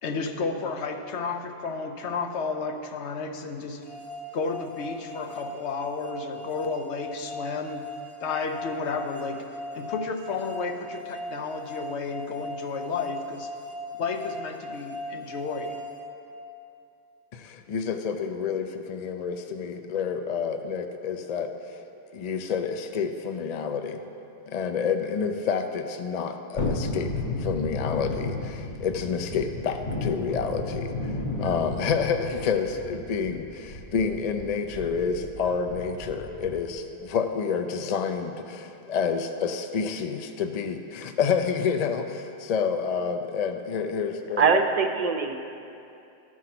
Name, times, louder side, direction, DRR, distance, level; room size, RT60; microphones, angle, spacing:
voice 1, 0.0-3.8 4.3-7.9 8.2-9.5 9.7-13.5 14.0-15.8, left 4 dB, 90° left, 6 dB, 1.0 m, -32 dB
sound 1, 3.9-16.8, left 1 dB, 70° left, 1.4 m, -39 dB
voice 2, 17.3-21.8 22.1-24.0 24.5-31.1 31.4-44.4, left 6 dB, 50° left, 7 dB, 0.5 m, -29 dB
Thunderstorm, 26.6-36.8 37.1-37.2, left 2 dB, 35° left, 0.9 m, -34 dB
voice 3, 44.4-45.3, right 5 dB, 40° right, 5 dB, 0.6 m, -22 dB
13.5 x 4.6 x 5.8 m, 2.6 s
omnidirectional pair, 1.1 m